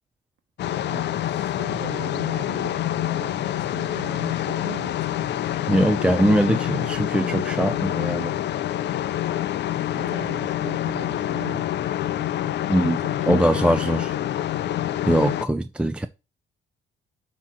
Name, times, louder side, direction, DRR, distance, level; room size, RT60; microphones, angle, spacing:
sound 1, 0.6-15.4, left 12 dB, 60° left, 0.5 m, -26 dB
voice 1, 0.8-5.3 9.9-11.7 12.9-14.3, right 7 dB, 70° right, 1.0 m, -40 dB
voice 2, 5.7-8.3 12.7-13.0 13.3-14.1 15.1-16.1, right 1 dB, 5° right, 0.3 m, -21 dB
7.3 x 3.0 x 6.0 m
cardioid pair, 90°, 20 cm